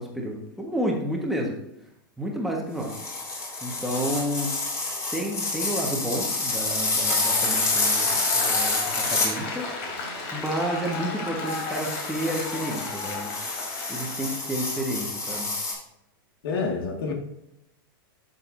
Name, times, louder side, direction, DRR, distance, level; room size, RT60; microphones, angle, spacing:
voice 1, 0.0-1.5 2.2-3.0 3.6-4.5 5.1-9.7 10.3-13.3 13.9-15.5, equal, ahead, 1.4 m, -30 dB
sound 1, 2.8-9.3 11.5-15.7, left 3 dB, 25° left, 3.5 m, -28 dB
Applause, 6.9-14.5, left 3 dB, 45° left, 3.0 m, -34 dB
voice 2, 16.4-17.1, left 4 dB, 70° left, 1.8 m, -28 dB
11.5 x 6.7 x 2.6 m
supercardioid pair, 145°, 12 cm